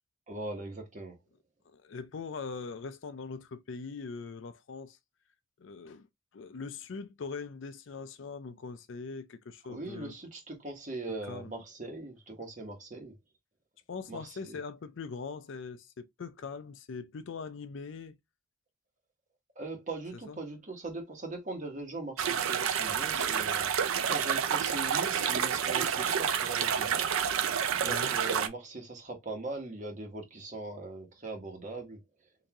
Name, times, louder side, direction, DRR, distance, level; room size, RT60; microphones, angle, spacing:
voice 1, 0.3-1.2 9.7-13.1 14.1-14.6 19.5-23.7 24.0-27.1 27.8-32.0, right 2 dB, 35° right, 1.2 m, -40 dB
voice 2, 1.7-5.0 5.6-6.1 6.3-10.1 11.3-11.5 13.9-18.2 20.3-20.4 27.8-28.2, left 4 dB, 65° left, 0.4 m, -41 dB
sound 1, 22.2-28.5, right 8 dB, 85° right, 0.5 m, -29 dB
3.9 x 2.7 x 2.8 m
head